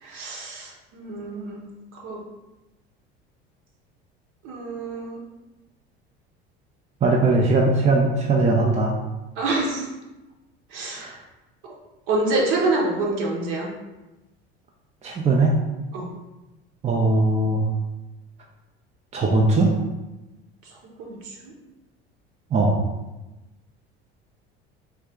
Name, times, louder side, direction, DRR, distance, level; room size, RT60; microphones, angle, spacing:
voice 1, 0.0-2.2 4.4-5.2 9.3-9.9 10.7-11.2 12.1-13.7 15.9-16.1 20.6-21.5, right 2 dB, 60° right, -2 dB, 1.1 m, -27 dB
voice 2, 7.0-8.9 11.0-11.1 15.0-15.6 16.8-17.6 19.1-19.7 22.5-22.8, right 2 dB, 20° right, -2 dB, 0.5 m, -19 dB
3.3 x 2.8 x 3.5 m, 1.1 s
hypercardioid pair, 70°, 32 cm